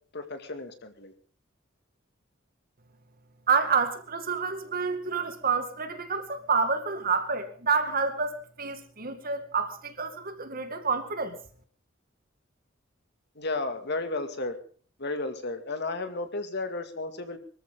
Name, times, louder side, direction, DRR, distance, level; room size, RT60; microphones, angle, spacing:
voice 1, 0.1-1.1 13.4-14.6 15.0-17.4, left 2 dB, 60° left, 2.2 m, -33 dB
voice 2, 3.5-11.4, right 5 dB, 50° right, 2.1 m, -28 dB
24.0 x 14.0 x 3.8 m
head